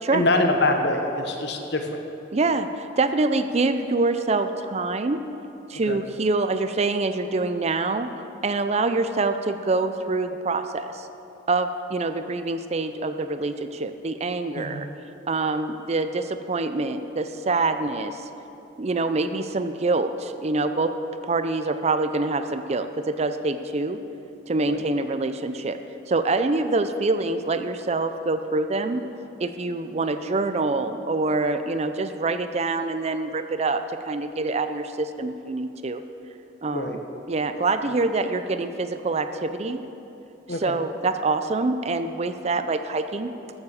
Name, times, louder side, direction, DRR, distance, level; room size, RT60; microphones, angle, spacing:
voice 1, 0.1-2.0 5.9-6.0 14.5-14.8 24.6-24.8 36.7-37.0 40.5-40.7, left 2 dB, 65° left, 4 dB, 1.2 m, -24 dB
voice 2, 2.3-5.2 5.7-8.1 8.4-11.1 11.5-14.9 15.3-18.3 18.8-20.9 21.2-24.0 24.5-25.8 26.1-29.0 29.4-36.0 36.6-37.0 37.3-39.8 40.6-43.3, right 3 dB, 35° right, 9 dB, 0.5 m, -25 dB
14.0 x 7.3 x 6.6 m, 2.8 s
head